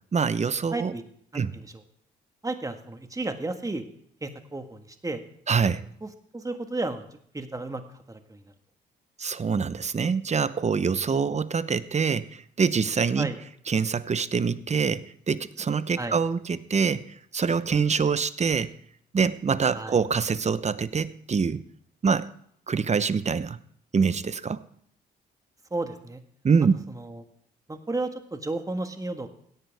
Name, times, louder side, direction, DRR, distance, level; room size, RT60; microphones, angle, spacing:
voice 1, 0.1-0.9 1.3-1.5 5.5-5.8 9.2-13.3 13.7-18.7 19.1-21.6 22.0-22.3 22.7-23.6 23.9-24.6 26.4-26.8, right 5 dB, 35° right, 15 dB, 0.9 m, -25 dB
voice 2, 0.7-1.0 1.3-1.7 2.4-3.8 4.2-5.2 6.0-7.0 7.3-7.8 8.1-8.4 13.2-13.4 16.0-16.2 19.7-19.9 25.7-26.2 26.9-27.2 27.7-29.3, right 2 dB, 15° right, 7 dB, 1.7 m, -33 dB
17.0 x 10.0 x 3.5 m, 0.66 s
supercardioid pair, 55°, 20 cm